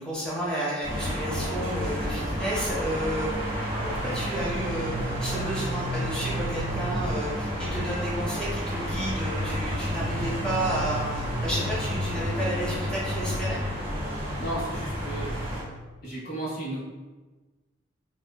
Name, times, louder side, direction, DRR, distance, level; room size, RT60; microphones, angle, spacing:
voice 1, 0.0-3.3 3.8-13.6, equal, 5° left, -7 dB, 0.8 m, -31 dB
sound 1, 0.8-15.6, equal, 30° right, 1.0 m, -30 dB
voice 2, 14.4-15.3 16.0-16.8, right 1 dB, 50° left, -6 dB, 1.1 m, -34 dB
4.3 x 2.4 x 2.2 m, 1.2 s
head